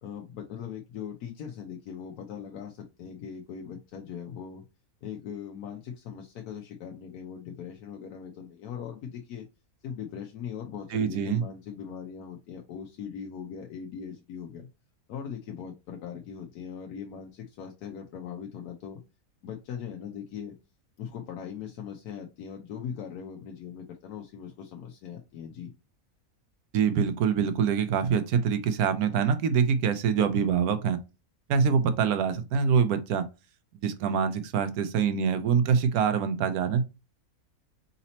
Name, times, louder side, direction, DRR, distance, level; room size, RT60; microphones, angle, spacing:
voice 1, 0.0-4.6 5.0-9.5 9.8-14.7 15.1-19.0 19.4-20.5 21.0-25.7, left 7 dB, 90° left, 1.2 m, -40 dB
voice 2, 10.9-11.4 26.7-31.0 31.5-33.2 33.8-36.8, right 6 dB, 90° right, 1.1 m, -25 dB
4.1 x 4.0 x 2.9 m
omnidirectional pair, 1.6 m